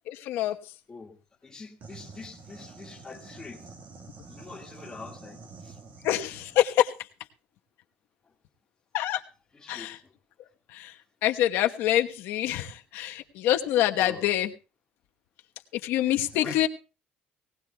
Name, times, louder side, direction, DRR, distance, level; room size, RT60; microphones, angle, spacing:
voice 1, 0.1-0.6 6.0-6.9 8.9-9.2 9.7-10.0 10.7-10.9 11.2-14.5 15.7-16.7, left 12 dB, 80° left, 5 dB, 1.1 m, -26 dB
voice 2, 1.4-3.7 4.3-6.1 8.2-8.3 9.5-10.1 14.0-14.3 16.3-16.7, left 4 dB, 20° left, 1 dB, 1.9 m, -45 dB
sound 1, 1.8-6.6, right 4 dB, 45° right, 1.6 m, -47 dB
19.5 x 18.0 x 2.3 m, 0.31 s
cardioid pair, 160°, 4 cm